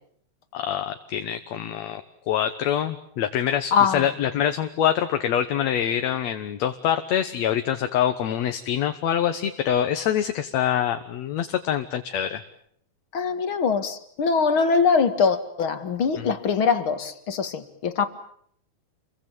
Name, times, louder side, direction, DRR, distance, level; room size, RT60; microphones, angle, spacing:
voice 1, 0.5-2.0 2.3-12.4 16.2-16.3, left 10 dB, 65° left, 2.4 m, -25 dB
voice 2, 3.7-4.0 13.1-18.1, left 5 dB, 45° left, 2.5 m, -22 dB
29.5 x 23.5 x 7.4 m
omnidirectional pair, 3.5 m